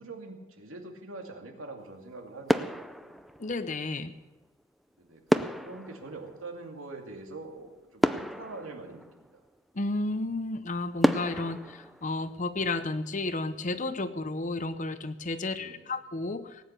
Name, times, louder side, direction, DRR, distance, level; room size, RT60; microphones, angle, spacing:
voice 1, 0.0-3.2 5.0-9.3 15.5-15.9, right 3 dB, 90° right, 2 dB, 2.5 m, -44 dB
sound 1, 1.8-2.2 2.5-3.9 5.3-7.2 7.6-7.7 8.0-9.6 10.1-10.2 11.0-12.9 13.2-13.5, equal, ahead, 0.4 m, -31 dB
voice 2, 3.4-4.1 9.7-16.6, left 2 dB, 40° left, 12 dB, 0.8 m, -32 dB
18.0 x 9.5 x 6.7 m, 1.1 s
head